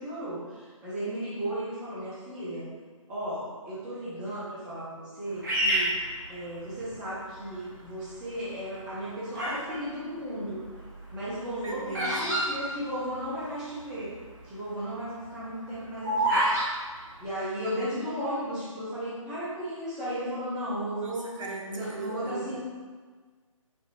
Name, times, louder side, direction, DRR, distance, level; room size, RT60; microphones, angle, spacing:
voice 1, 0.0-2.7 3.1-5.9 6.3-10.7 11.1-14.1 14.4-16.4 17.2-21.4 21.7-22.6, equal, 5° right, -9 dB, 0.5 m, -35 dB
Bird vocalization bird call bird song, 5.4-6.9 7.6-8.0 8.8-9.7 10.0-13.5 13.7-13.8 14.0-14.4 14.8-16.7, right 1 dB, 35° right, 1.0 m, -28 dB
voice 2, 11.5-12.3 21.0-22.6, right 2 dB, 70° right, -1 dB, 0.9 m, -38 dB
5.1 x 2.7 x 2.8 m, 1.5 s
figure-of-eight pair, 145°, 18 cm